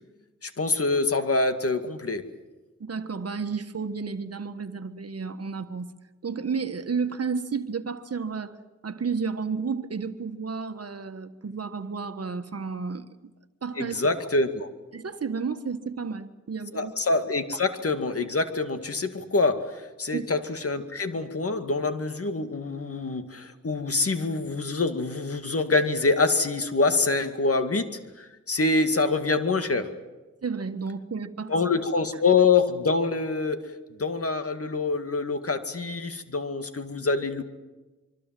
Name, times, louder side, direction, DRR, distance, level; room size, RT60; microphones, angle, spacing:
voice 1, 0.4-2.3 13.8-14.7 16.7-30.0 31.5-33.6 34.0-37.4, left 3 dB, 50° left, 8 dB, 2.2 m, -25 dB
voice 2, 2.8-5.9 6.2-8.6 8.8-13.3 13.6-14.0 14.9-16.9 20.1-20.3 30.4-31.5, right 5 dB, 55° right, 9 dB, 1.5 m, -32 dB
25.0 x 24.0 x 7.7 m, 1.2 s
cardioid pair, 50°, 30 cm